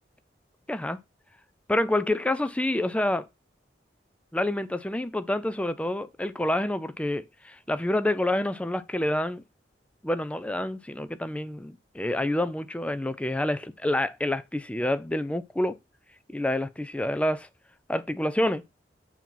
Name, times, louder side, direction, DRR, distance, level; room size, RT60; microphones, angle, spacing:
voice 1, 0.7-1.0 1.7-3.3 4.3-9.4 10.0-15.8 16.3-17.5 17.9-18.6, left 1 dB, 5° left, 0.4 m, -28 dB
7.2 x 2.9 x 5.8 m
head